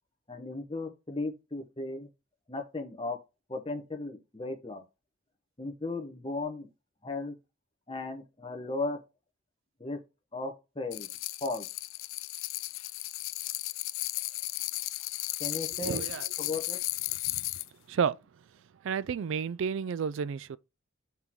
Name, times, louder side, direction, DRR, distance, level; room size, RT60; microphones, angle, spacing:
voice 1, 0.3-2.1 2.5-3.2 3.5-4.8 5.6-6.7 7.0-7.3 7.9-9.0 9.8-10.0 10.3-11.1 11.4-11.7 15.4-16.0 16.4-16.8, left 2 dB, 25° left, 1.0 m, -36 dB
sound 1, 10.9-17.7, left 19 dB, 70° left, 0.4 m, -35 dB
voice 2, 15.8-16.3 17.3-17.5 17.9-18.2 18.8-20.6, right 6 dB, 65° right, 0.3 m, -31 dB
5.8 x 3.8 x 4.5 m
head